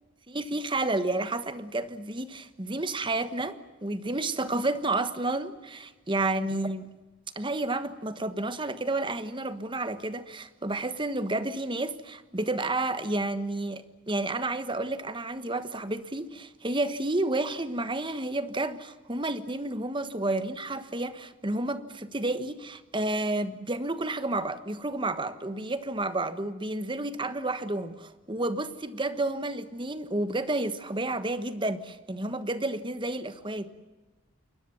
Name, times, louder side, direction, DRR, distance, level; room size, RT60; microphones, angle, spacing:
voice 1, 0.3-3.5 3.8-6.8 7.3-33.7, right 2 dB, 25° right, 12 dB, 1.2 m, -31 dB
28.0 x 21.5 x 7.1 m, 1.2 s
head